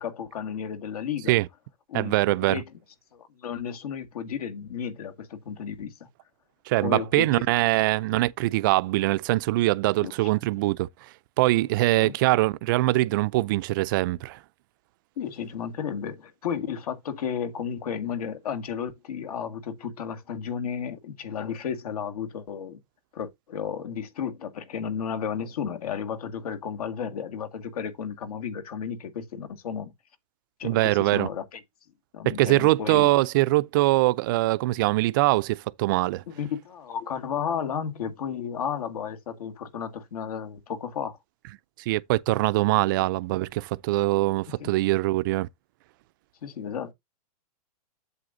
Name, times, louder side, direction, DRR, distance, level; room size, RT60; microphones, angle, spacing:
voice 1, 0.0-1.3 1.9-2.1 2.5-2.7 3.1-5.9 6.8-7.4 10.0-10.1 12.0-12.1 15.2-22.8 23.1-29.9 30.6-31.6 32.1-33.1 36.3-41.2 44.6-44.7 46.4-46.9, left 7 dB, 70° left, 2.1 m, -33 dB
voice 2, 1.9-2.6 6.7-10.9 11.4-14.4 30.6-31.3 32.2-36.2 41.9-45.5, right 19 dB, 35° right, 0.4 m, -23 dB
7.8 x 7.8 x 2.6 m
hypercardioid pair, 160°, 20 cm